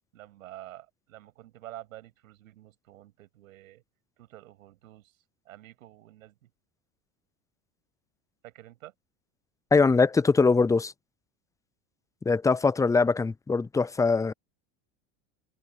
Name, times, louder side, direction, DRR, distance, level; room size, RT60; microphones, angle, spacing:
voice 1, 0.1-3.8 4.2-5.1 5.4-6.5 8.4-8.9, right 15 dB, 85° right, 8.0 m, -48 dB
voice 2, 9.7-10.9 12.3-14.3, left 4 dB, 10° left, 0.4 m, -22 dB
supercardioid pair, 100°, 40 cm